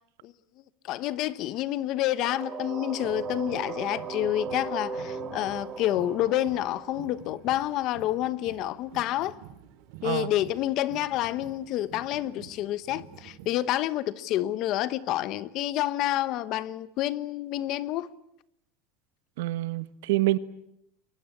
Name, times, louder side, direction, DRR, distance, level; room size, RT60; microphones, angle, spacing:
voice 1, 0.8-9.4 10.0-18.1, left 14 dB, 40° left, 1.0 m, -28 dB
sound 1, 2.2-8.0, right 4 dB, 25° right, 2.1 m, -37 dB
sound 2, 3.0-13.5, right 9 dB, 55° right, 4.0 m, -49 dB
voice 2, 10.0-10.3 19.4-20.4, right 18 dB, 80° right, 1.3 m, -26 dB
28.5 x 23.5 x 8.4 m
supercardioid pair, 175°, 0 cm